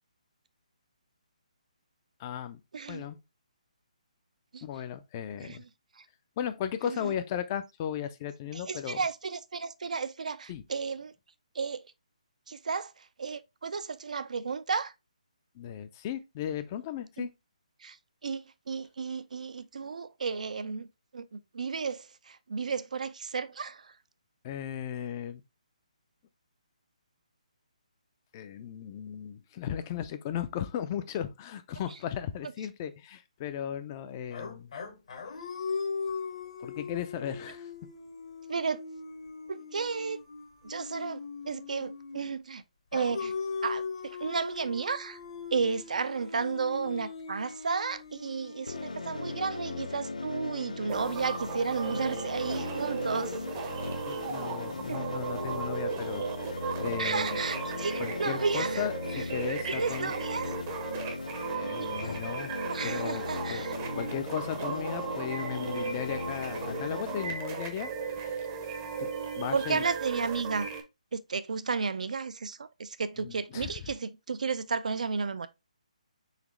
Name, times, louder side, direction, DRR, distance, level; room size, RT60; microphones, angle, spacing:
voice 1, 2.2-2.6 2.9-3.2 4.6-5.6 6.4-9.0 10.5-10.6 15.6-17.3 24.4-25.4 28.3-34.7 36.6-37.7 54.1-57.4 58.0-60.1 61.6-62.5 62.8-63.2 63.5-63.6 63.9-67.9 68.2-68.5 69.0-69.1 69.4-69.8 73.2-73.7, left 9 dB, 25° left, 0.3 m, -36 dB
voice 2, 2.7-3.0 4.5-4.6 5.4-5.7 6.0-6.1 6.8-7.1 8.5-11.1 11.5-11.8 12.5-14.9 17.2-17.3 17.8-18.0 18.2-20.9 21.1-24.0 38.5-38.8 39.5-40.2 40.6-42.6 42.9-43.3 43.6-45.2 45.5-53.7 54.9-55.1 57.0-58.9 59.1-60.5 61.8-62.2 62.7-63.8 64.6-64.8 69.5-70.7 71.1-75.5, right 5 dB, 75° right, 0.4 m, -33 dB
sound 1, 34.3-42.4 42.9-51.0, left 5 dB, 50° left, 0.9 m, -40 dB
sound 2, 48.7-67.3, left 3 dB, 80° left, 0.6 m, -38 dB
sound 3, 50.9-70.8, right 6 dB, 25° right, 0.6 m, -36 dB
4.0 x 3.0 x 2.9 m
hypercardioid pair, 155°, 4 cm